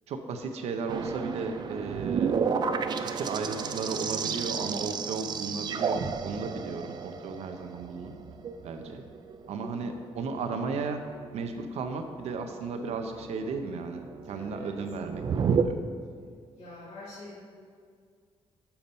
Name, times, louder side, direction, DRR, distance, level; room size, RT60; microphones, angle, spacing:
voice 1, 0.1-2.4 2.9-8.1 8.6-9.0 9.5-11.0 11.3-14.0 14.3-15.8, right 4 dB, 80° right, 5 dB, 0.6 m, -35 dB
sound 1, 0.9-15.6, right 6 dB, 40° right, 0.4 m, -32 dB
voice 2, 14.3-14.7 16.5-17.4, left 2 dB, 65° left, -8 dB, 2.0 m, -45 dB
6.9 x 5.7 x 5.2 m, 2.1 s
cardioid pair, 140°, 11 cm